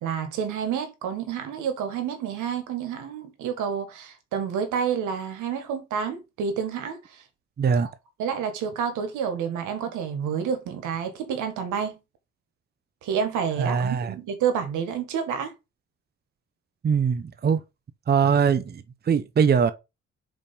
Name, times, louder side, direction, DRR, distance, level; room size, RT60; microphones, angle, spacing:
voice 1, 0.0-7.2 7.8-7.9 8.2-12.0 13.0-15.5, right 7 dB, 90° right, 1.7 m, -29 dB
voice 2, 7.6-7.9 13.6-14.1 16.8-17.6 18.1-19.7, right 6 dB, 35° right, 0.7 m, -22 dB
5.2 x 4.4 x 5.3 m
cardioid pair, 90°, 30 cm